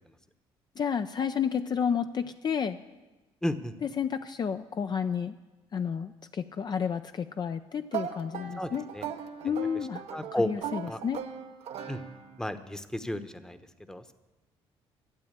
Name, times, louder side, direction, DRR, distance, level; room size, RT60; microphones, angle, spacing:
voice 1, 0.8-2.8 3.8-5.3 5.7-8.8 9.4-10.0 10.5-11.2, left 7 dB, 40° left, 8 dB, 0.5 m, -31 dB
voice 2, 3.4-3.7 8.6-9.0 9.4-9.5 10.1-10.5 10.9-11.0 11.9-12.0 12.4-13.6 13.9-14.1, left 1 dB, 5° left, 10 dB, 0.9 m, -33 dB
sound 1, 7.9-12.5, right 9 dB, 70° right, 0.9 m, -39 dB
12.5 x 7.9 x 8.7 m, 1.2 s
supercardioid pair, 80°, 11 cm